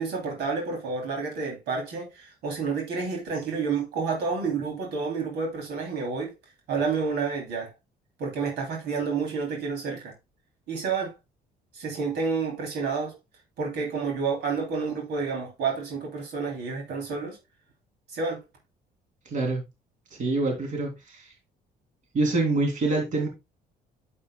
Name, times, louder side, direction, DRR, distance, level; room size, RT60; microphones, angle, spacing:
voice 1, 0.0-6.3 6.7-7.7 8.2-10.1 10.7-11.1 11.7-13.1 13.6-17.4 18.1-18.4, right 5 dB, 75° right, 3.0 m, -29 dB
voice 2, 19.2-19.6 20.1-21.3 22.1-23.3, right 2 dB, 50° right, 3.1 m, -26 dB
9.3 x 7.5 x 2.2 m
cardioid pair, 110°, 17 cm